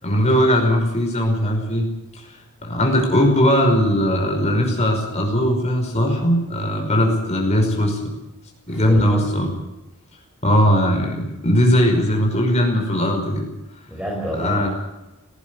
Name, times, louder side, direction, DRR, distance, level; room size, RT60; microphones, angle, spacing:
voice 1, 0.0-1.9 2.6-8.0 8.7-9.5 10.4-13.5 14.4-14.7, equal, 30° left, 2 dB, 5.5 m, -19 dB
voice 2, 8.7-9.3 13.9-14.7, equal, 5° right, -3 dB, 5.4 m, -29 dB
18.5 x 15.0 x 9.9 m, 0.99 s
head